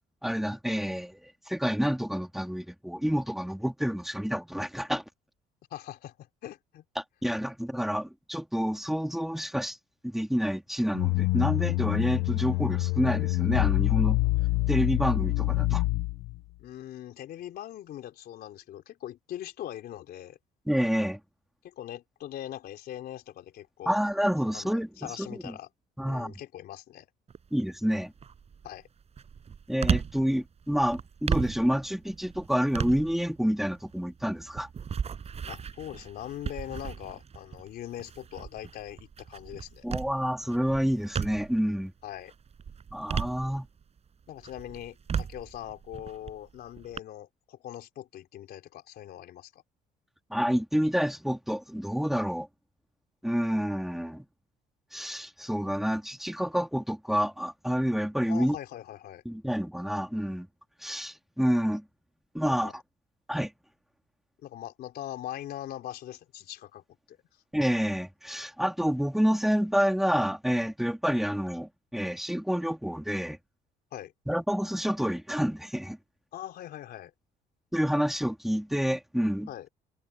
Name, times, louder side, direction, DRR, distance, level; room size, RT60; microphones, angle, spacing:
voice 1, 0.2-1.2 1.5-5.0 7.0-9.8 10.0-14.2 14.7-15.8 20.7-21.2 23.9-25.5 26.0-26.3 27.5-28.1 29.7-34.7 39.8-41.9 42.9-43.7 50.3-52.5 53.2-54.3 54.9-58.6 59.2-60.5 60.8-61.8 62.3-62.7 63.3-63.5 67.5-73.4 74.3-76.0 77.7-79.5, equal, ahead, 3.1 m, -28 dB
voice 2, 5.7-6.8 16.6-20.4 21.6-24.0 24.5-25.7 26.0-27.1 28.6-28.9 35.5-39.8 42.0-42.3 44.3-49.5 58.3-59.2 62.4-62.7 64.4-67.2 73.9-74.1 76.3-77.1 79.5-79.7, left 12 dB, 65° left, 3.7 m, -41 dB
sound 1, 10.9-16.4, left 21 dB, 85° left, 0.8 m, -26 dB
sound 2, 27.3-27.7 28.2-41.7 42.1-44.0 44.4-47.0, right 6 dB, 40° right, 7.9 m, -36 dB
cardioid pair, 110°, 17 cm